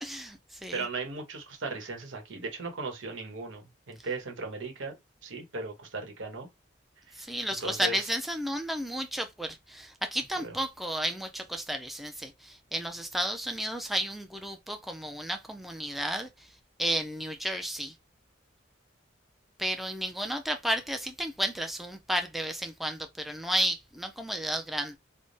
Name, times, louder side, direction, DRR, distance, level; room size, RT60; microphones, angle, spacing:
voice 1, 0.0-0.8 7.2-16.5 16.8-17.9 19.6-25.0, right 1 dB, ahead, 0.3 m, -32 dB
voice 2, 0.7-5.0 5.2-6.5 7.1-8.1 10.4-10.5, right 3 dB, 85° right, 1.0 m, -37 dB
3.5 x 2.0 x 3.9 m
head